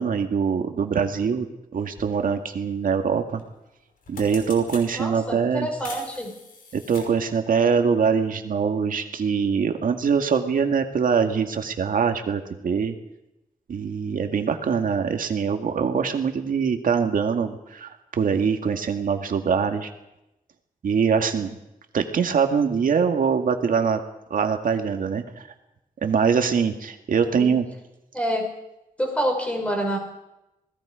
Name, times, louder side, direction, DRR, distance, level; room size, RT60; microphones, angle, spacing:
voice 1, 0.0-3.4 4.1-5.7 6.7-12.9 13.7-19.9 20.8-21.6 21.9-24.0 24.3-25.4 26.0-27.6, right 6 dB, 75° right, 5 dB, 2.1 m, -23 dB
sound 1, 1.9-2.1 3.4-3.6 3.9-4.9 5.8-7.3, left 3 dB, 80° left, 5.5 m, -41 dB
voice 2, 4.9-6.3 27.3-27.5 28.1-28.5 29.0-30.0, equal, 10° left, 1 dB, 5.9 m, -27 dB
27.5 x 19.5 x 5.1 m, 0.90 s
wide cardioid pair, 150°, 14 cm